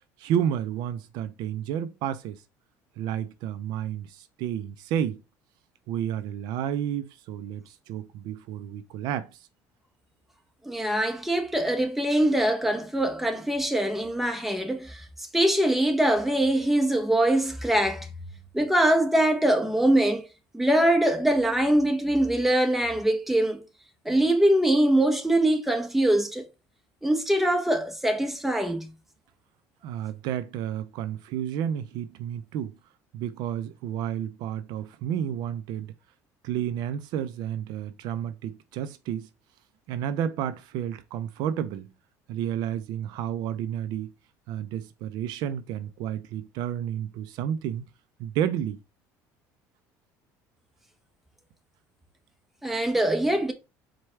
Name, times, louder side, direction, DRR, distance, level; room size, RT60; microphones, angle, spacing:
voice 1, 0.2-2.4 3.0-5.2 5.9-9.4 29.8-32.7 33.1-35.9 36.4-39.3 39.9-41.9 42.3-44.1 44.5-47.9 48.2-48.8, right 9 dB, 70° right, 0.4 m, -31 dB
voice 2, 10.6-15.0 15.3-18.1 18.5-20.2 20.5-23.6 24.0-26.5 27.0-28.9 52.6-53.5, right 1 dB, 5° right, 0.8 m, -23 dB
4.6 x 2.3 x 4.3 m
cardioid pair, 110°, 7 cm